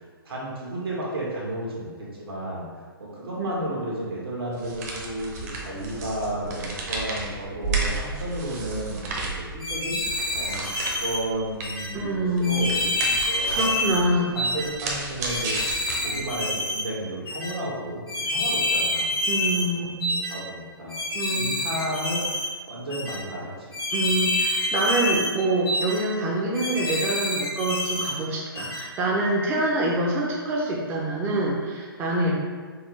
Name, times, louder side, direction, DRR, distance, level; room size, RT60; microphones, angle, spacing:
voice 1, 0.2-2.6 3.0-13.7 14.3-19.1 19.6-20.0 20.3-21.0 21.3-23.7 32.2-32.3, right 1 dB, 80° right, -5 dB, 1.5 m, -33 dB
sound 1, 4.5-16.4, right 3 dB, 40° right, 0.8 m, -33 dB
sound 2, 9.6-11.2 11.6-11.9 12.4-14.0 14.4-14.7 15.2-16.8 17.3-17.5 18.1-19.7 20.0-20.4 20.9-22.5 22.9-23.2 23.7-25.3 25.7-26.0 26.5-28.1 28.6-28.8, left 1 dB, 80° left, 1.4 m, -27 dB
voice 2, 11.9-12.7 13.5-14.4 19.2-20.2 21.1-21.6 23.9-32.3, right 1 dB, 20° right, -4 dB, 0.5 m, -26 dB
5.4 x 2.1 x 3.1 m, 1.6 s
hypercardioid pair, 135°, 13 cm